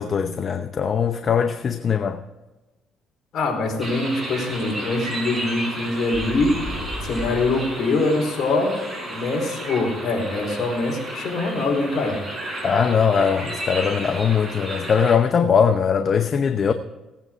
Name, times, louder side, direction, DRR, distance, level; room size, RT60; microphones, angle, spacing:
voice 1, 0.0-2.2 12.6-16.7, left 6 dB, 40° left, 0.7 m, -20 dB
voice 2, 3.3-6.6 7.0-8.7 9.1-12.2, left 2 dB, 60° left, 4.5 m, -23 dB
sound 1, 3.8-15.2, right 1 dB, 20° right, 5.6 m, -33 dB
sound 2, 6.1-7.4, left 1 dB, 15° left, 4.6 m, -33 dB
18.0 x 8.9 x 4.6 m
cardioid pair, 105°, 0 cm